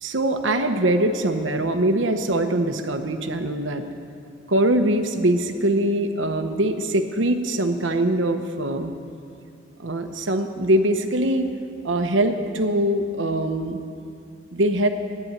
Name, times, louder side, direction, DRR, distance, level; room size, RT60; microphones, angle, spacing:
voice 1, 0.0-3.8 4.5-8.9 9.8-11.5 11.8-13.8 14.5-14.9, right 1 dB, 85° right, 6 dB, 1.0 m, -22 dB
12.0 x 9.7 x 9.5 m, 2.4 s
head